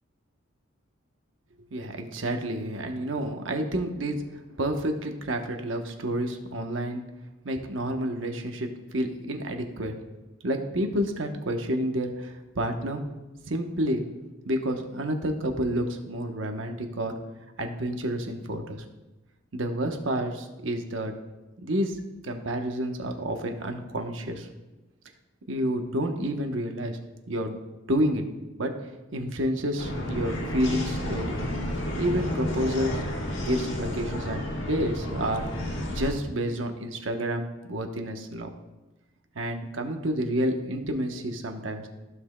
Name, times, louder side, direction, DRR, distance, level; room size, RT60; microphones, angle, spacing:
voice 1, 1.7-4.3 4.6-7.0 7.4-9.9 10.4-13.0 13.5-14.1 14.5-17.1 17.6-18.8 19.5-21.1 21.6-22.0 22.2-24.5 25.5-27.0 27.3-27.6 27.9-28.2 28.6-28.8 29.1-31.4 32.0-33.0 33.4-35.5 35.9-38.5 39.3-41.9, right 1 dB, 80° right, 4 dB, 1.0 m, -29 dB
sound 1, 29.8-36.1, left 1 dB, 80° left, 1.5 m, -31 dB
15.0 x 6.0 x 2.2 m, 1.1 s
head